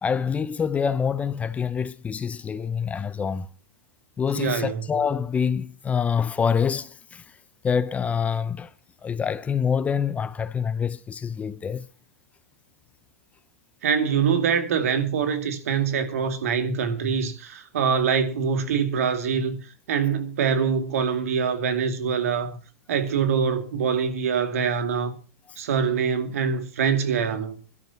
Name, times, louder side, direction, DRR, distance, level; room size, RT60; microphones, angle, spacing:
voice 1, 0.0-3.5 4.2-7.2 7.6-8.7 9.0-11.9, left 6 dB, 15° left, 0.6 m, -26 dB
voice 2, 4.3-4.9 13.8-19.6 19.9-22.6 22.9-25.1 25.6-27.6, right 6 dB, 75° right, 2.4 m, -24 dB
25.0 x 12.0 x 2.8 m
hypercardioid pair, 120°, 8 cm